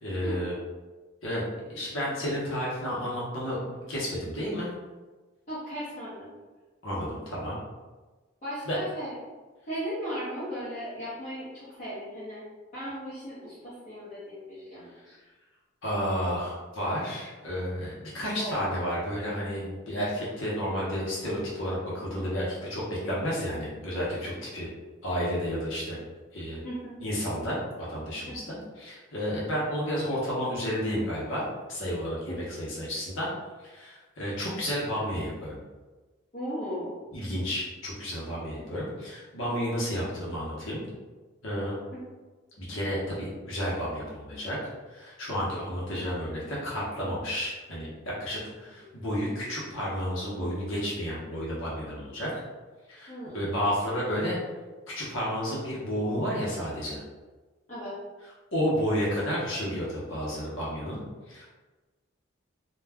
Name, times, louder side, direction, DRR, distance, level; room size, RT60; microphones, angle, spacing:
voice 1, 0.0-0.5 1.2-1.4 1.7-4.7 6.8-7.6 8.7-8.8 15.8-24.7 25.0-26.0 26.3-26.6 27.0-31.4 31.7-33.3 33.6-35.6 37.1-40.8 41.4-41.7 42.6-44.6 44.9-52.3 52.9-54.4 54.9-57.0 58.5-61.0 61.3-61.5, equal, 70° left, -6 dB, 0.9 m, -31 dB
voice 2, 5.5-6.3 8.4-9.1 9.7-12.4 12.7-15.2 18.3-18.6 26.6-27.0 28.3-28.5 32.3-32.4 36.3-37.0 41.9-42.0 48.8-48.9 53.1-53.5 57.7-57.9, equal, 35° left, -11 dB, 0.8 m, -37 dB
2.3 x 2.2 x 3.4 m, 1.3 s
head